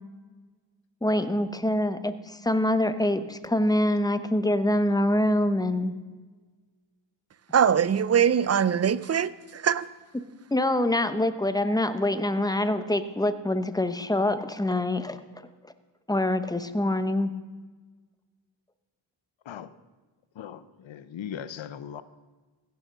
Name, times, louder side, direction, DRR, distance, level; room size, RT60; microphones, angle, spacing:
voice 1, 1.0-5.9 10.5-15.2 16.1-17.3, left 1 dB, 10° left, 0.8 m, -25 dB
voice 2, 7.5-9.9, right 8 dB, 35° right, 0.5 m, -22 dB
voice 3, 20.4-22.0, left 9 dB, 75° left, 0.7 m, -39 dB
15.5 x 6.3 x 6.6 m
cardioid pair, 55°, 47 cm